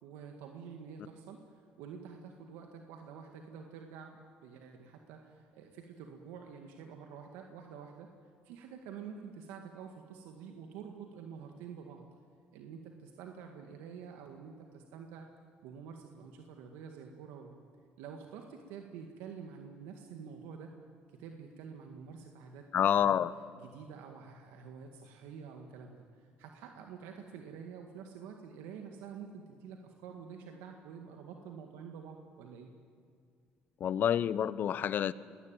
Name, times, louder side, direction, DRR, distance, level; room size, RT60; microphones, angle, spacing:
voice 1, 0.0-8.1 8.4-12.1 12.5-15.3 15.6-17.6 18.0-20.7 21.2-22.7 22.9-23.2 23.6-32.7, right 6 dB, 85° right, 3 dB, 1.9 m, -48 dB
voice 2, 22.7-23.4 33.8-35.1, left 9 dB, 50° left, 17 dB, 0.8 m, -28 dB
24.0 x 19.0 x 9.1 m, 2.2 s
cardioid pair, 95°, 4 cm